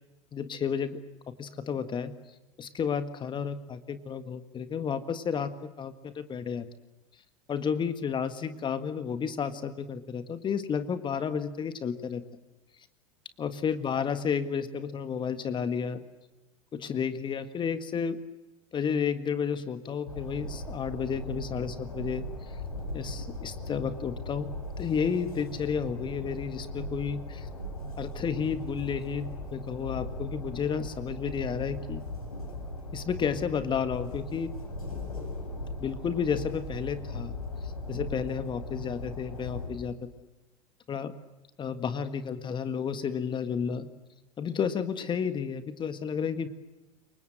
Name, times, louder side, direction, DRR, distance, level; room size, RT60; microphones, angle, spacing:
voice 1, 0.3-1.0 1.3-2.1 2.6-5.5 5.8-6.7 7.5-12.2 13.4-16.0 16.7-18.2 18.7-22.3 22.9-24.5 24.8-27.5 28.0-32.0 32.9-34.5 35.8-37.3 37.6-39.9 40.9-41.1 41.6-43.9 44.4-46.5, left 7 dB, 25° left, 11 dB, 1.7 m, -31 dB
Train, 20.1-39.7, left 1 dB, 85° left, 7.5 m, -38 dB
28.5 x 24.5 x 7.7 m, 1.0 s
figure-of-eight pair, 85°, 18 cm